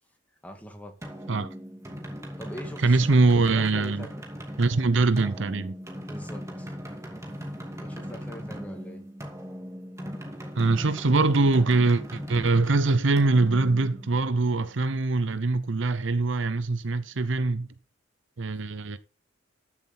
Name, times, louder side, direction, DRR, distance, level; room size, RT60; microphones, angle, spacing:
voice 1, 0.4-1.0 2.4-4.2 6.1-6.7 7.3-7.4 7.8-9.0, equal, 10° left, 2.0 m, -42 dB
sound 1, 1.0-14.6, equal, 15° right, 2.3 m, -39 dB
voice 2, 2.8-4.1 4.6-5.7 10.6-17.7 18.4-19.0, right 3 dB, 70° right, 0.7 m, -23 dB
13.5 x 7.4 x 4.3 m
head